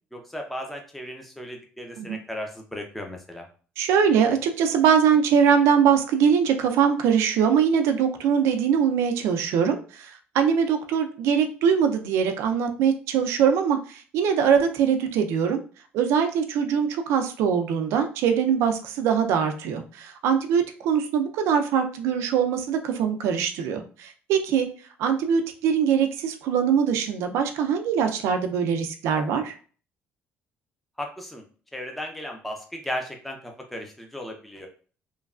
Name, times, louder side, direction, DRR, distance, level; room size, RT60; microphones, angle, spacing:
voice 1, 0.1-3.5 31.0-31.4 31.7-34.7, left 1 dB, 5° left, 2 dB, 0.5 m, -35 dB
voice 2, 3.8-15.6 15.9-24.7 25.0-29.5, right 7 dB, 85° right, 6 dB, 0.5 m, -22 dB
3.1 x 2.2 x 2.4 m, 0.40 s
cardioid pair, 120°, 4 cm